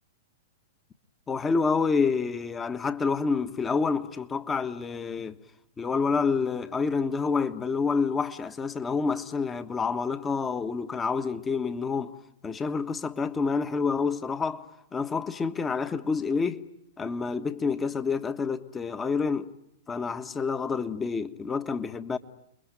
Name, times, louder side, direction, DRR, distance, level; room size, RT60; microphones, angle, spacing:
voice 1, 1.3-5.4 5.8-12.1 12.4-14.6 14.9-16.6 17.0-19.5 19.9-22.2, left 5 dB, 20° left, 1.4 m, -28 dB
30.0 x 22.0 x 9.1 m
hypercardioid pair, 105°, 0 cm